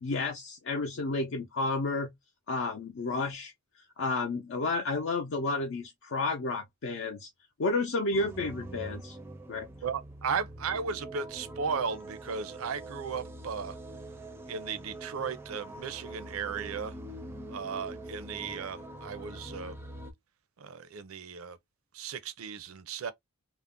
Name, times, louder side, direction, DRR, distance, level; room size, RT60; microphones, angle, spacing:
voice 1, 0.0-2.1 2.5-3.5 4.0-7.3 7.6-9.2 9.5-9.7, left 3 dB, 60° left, 0.5 m, -31 dB
sound 1, 8.1-20.1, right 1 dB, 10° right, 0.4 m, -44 dB
voice 2, 9.8-13.8 14.5-17.0 17.5-19.8 20.6-21.6 21.9-23.1, right 6 dB, 75° right, 0.5 m, -35 dB
2.4 x 2.0 x 3.6 m
head